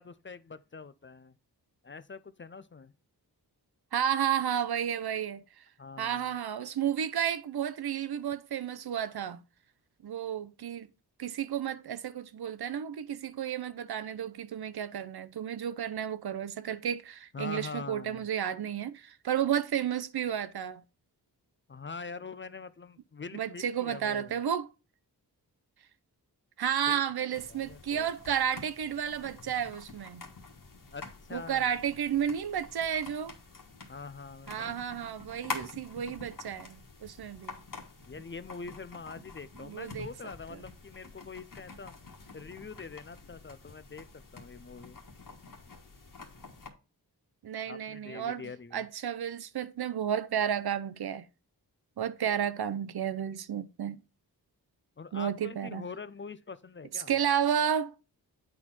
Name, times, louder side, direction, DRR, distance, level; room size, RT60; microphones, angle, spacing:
voice 1, 0.0-1.3 1.8-2.9 5.8-6.3 17.3-18.2 21.7-24.4 26.9-28.1 30.9-31.7 33.9-34.8 38.1-42.0 42.3-44.1 44.3-45.0 47.6-48.9 55.0-57.1, left 4 dB, 30° left, 0.5 m, -44 dB
voice 2, 3.9-5.6 6.0-9.4 10.0-10.9 11.2-20.8 23.3-24.7 26.6-30.3 31.3-33.4 34.5-37.6 39.6-40.1 40.5-40.6 47.4-51.3 52.0-54.0 55.1-55.8 56.9-57.9, right 9 dB, 70° right, 0.7 m, -32 dB
sound 1, 27.4-46.7, left 4 dB, 55° left, 1.6 m, -47 dB
8.3 x 4.3 x 4.3 m
cardioid pair, 55°, 40 cm